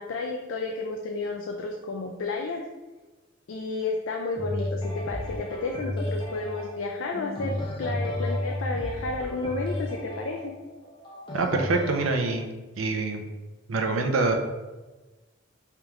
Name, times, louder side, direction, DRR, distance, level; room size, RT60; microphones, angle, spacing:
voice 1, 0.0-2.6 3.5-10.5, left 3 dB, 75° left, 2 dB, 0.4 m, -32 dB
sound 1, 4.4-12.3, left 1 dB, 25° left, 0.7 m, -33 dB
voice 2, 11.3-12.5 12.8-13.2 13.7-14.3, right 3 dB, 85° right, 4 dB, 0.5 m, -25 dB
3.4 x 3.0 x 3.6 m, 1.2 s
head